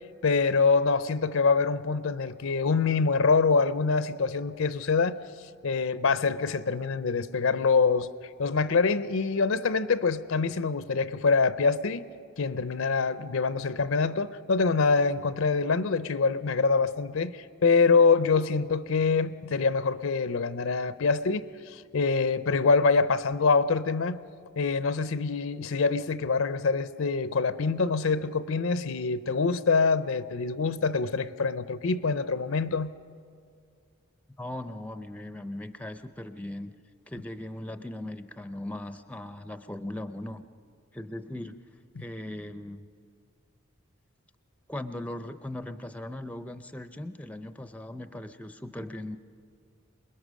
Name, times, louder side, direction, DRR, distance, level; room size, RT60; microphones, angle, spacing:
voice 1, 0.2-5.2 5.6-8.1 8.4-12.1 12.4-24.2 24.6-32.9, left 4 dB, 70° left, 0.6 m, -25 dB
voice 2, 34.4-36.7 37.1-40.4 40.9-41.6 42.0-42.8 44.7-49.2, left 1 dB, 5° left, 0.5 m, -38 dB
27.0 x 20.5 x 6.3 m
head